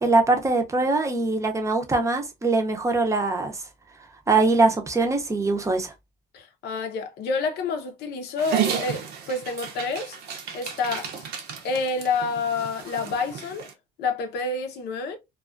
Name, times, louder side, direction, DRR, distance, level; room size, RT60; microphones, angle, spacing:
voice 1, 0.0-3.5 4.3-5.9, right 3 dB, 20° right, 0.6 m, -22 dB
voice 2, 6.3-10.2 10.5-11.3 11.6-13.7 14.0-15.2, left 4 dB, 75° left, 0.7 m, -28 dB
Dog, 8.4-13.7, right 8 dB, 70° right, 0.6 m, -32 dB
2.3 x 2.3 x 2.4 m
cardioid pair, 110°, 17 cm